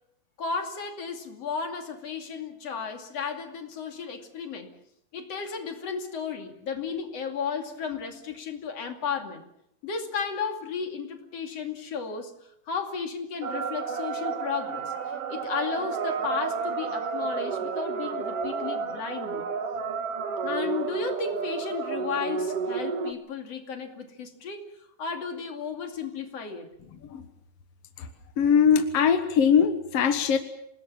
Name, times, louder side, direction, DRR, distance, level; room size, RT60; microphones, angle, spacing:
voice 1, 0.4-4.7 5.1-9.4 9.8-12.3 12.7-14.9 15.3-19.4 20.4-24.6 25.0-26.7, left 6 dB, 45° left, 5 dB, 3.3 m, -34 dB
sound 1, 13.4-23.1, right 5 dB, 50° right, 2.0 m, -31 dB
voice 2, 28.4-30.4, left 7 dB, 65° left, 8 dB, 1.6 m, -21 dB
27.5 x 19.5 x 7.3 m, 0.78 s
omnidirectional pair, 4.5 m